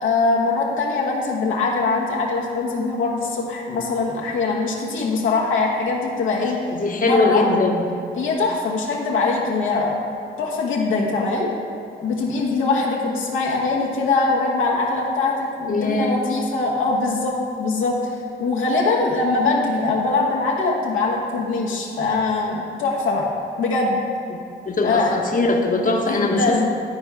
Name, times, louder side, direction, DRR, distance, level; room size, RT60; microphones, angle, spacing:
voice 1, 0.0-6.6 7.0-7.4 8.2-10.0 10.4-11.5 12.0-17.9 18.4-23.3 23.6-24.0 24.8-25.2 26.0-26.7, left 3 dB, 85° left, -3 dB, 1.2 m, -22 dB
voice 2, 6.7-7.8 15.7-16.2 24.7-26.7, left 2 dB, 40° left, 1 dB, 1.0 m, -21 dB
12.0 x 4.4 x 4.7 m, 2.4 s
supercardioid pair, 50°, 20 cm